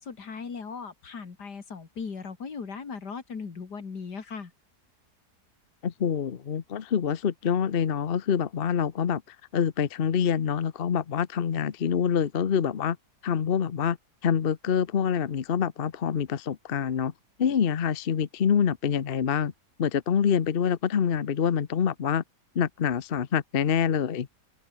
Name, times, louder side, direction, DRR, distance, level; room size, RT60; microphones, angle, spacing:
voice 1, 0.0-4.5, left 5 dB, 80° left, 3.0 m, -38 dB
voice 2, 5.8-9.2 9.5-13.0 13.2-14.0 14.2-17.1 17.4-19.5 19.8-22.2 22.5-24.3, left 7 dB, 40° left, 0.9 m, -26 dB
open air
omnidirectional pair, 1.8 m